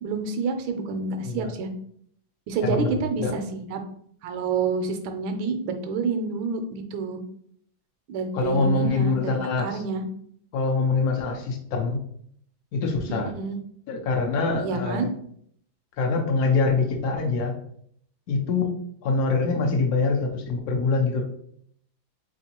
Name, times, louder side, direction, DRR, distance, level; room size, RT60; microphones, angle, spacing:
voice 1, 0.0-1.7 2.5-3.8 4.2-7.2 8.1-10.0 13.1-13.6 14.6-15.0, right 4 dB, 75° right, 6 dB, 1.3 m, -28 dB
voice 2, 2.6-3.3 8.3-9.8 10.5-12.0 12.7-13.3 13.9-15.1 16.0-17.5 18.3-18.7 19.0-21.2, left 3 dB, 80° left, 2 dB, 0.8 m, -24 dB
3.7 x 3.5 x 2.8 m, 0.66 s
omnidirectional pair, 2.3 m